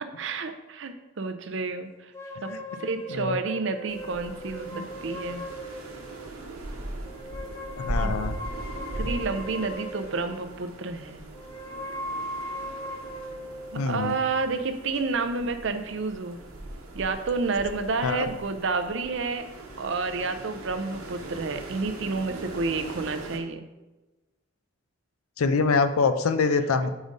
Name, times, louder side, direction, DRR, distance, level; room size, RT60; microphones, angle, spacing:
voice 1, 0.0-2.1 2.8-5.4 8.0-8.2 8.9-11.2 13.7-16.4 16.9-19.5 19.8-23.6, right 4 dB, 60° right, 8 dB, 0.5 m, -30 dB
sound 1, 2.1-6.3 7.1-10.5 11.3-15.7, equal, 10° left, 0.4 m, -39 dB
sound 2, 3.9-23.4, right 1 dB, 85° right, 1.0 m, -39 dB
voice 2, 7.8-8.4 13.7-14.1 18.0-18.3 25.4-26.9, left 4 dB, 85° left, 10 dB, 0.5 m, -25 dB
5.0 x 3.9 x 5.1 m, 1.1 s
head